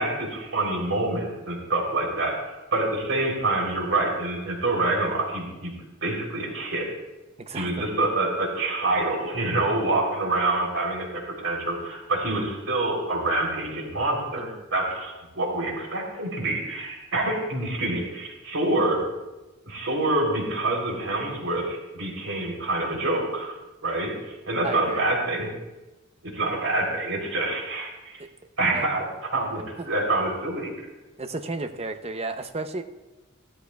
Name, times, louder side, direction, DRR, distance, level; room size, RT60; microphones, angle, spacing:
voice 1, 0.0-5.7 6.0-6.8 7.5-19.0 19.6-25.5 26.3-28.2 28.6-30.7, right 2 dB, 80° right, -1 dB, 3.4 m, -26 dB
voice 2, 7.4-7.9 14.3-14.6 24.6-25.0 28.2-28.3 28.7-28.9 29.8-29.9 31.2-32.8, right 3 dB, 30° right, 7 dB, 0.7 m, -33 dB
15.0 x 13.0 x 2.3 m, 1.1 s
head